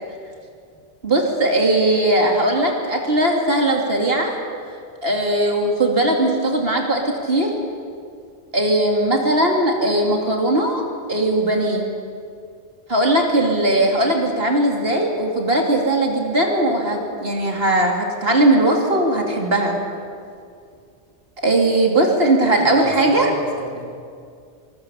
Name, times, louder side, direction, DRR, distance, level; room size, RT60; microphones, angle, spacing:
voice 1, 1.0-4.3 5.0-7.5 8.5-11.9 12.9-19.8 21.4-23.3, right 1 dB, 55° right, 1 dB, 3.0 m, -19 dB
voice 2, 22.6-23.8, equal, 20° left, -1 dB, 4.5 m, -32 dB
24.0 x 22.0 x 7.1 m, 2.3 s
omnidirectional pair, 1.2 m